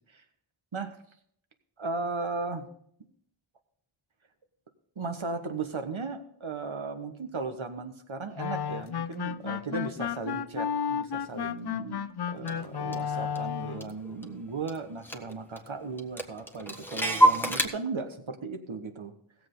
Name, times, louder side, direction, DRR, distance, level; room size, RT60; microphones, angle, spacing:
voice 1, 1.8-2.7 5.0-19.2, right 4 dB, 75° right, 7 dB, 1.3 m, -36 dB
sound 1, 8.4-13.9, left 8 dB, 55° left, 0.5 m, -33 dB
Clock, 12.5-12.6 12.9-14.4 14.7-14.8 15.0-15.7 16.0-17.7, right 1 dB, 5° left, 1.3 m, -26 dB
16.5 x 7.6 x 3.9 m, 0.65 s
wide cardioid pair, 40°, 49 cm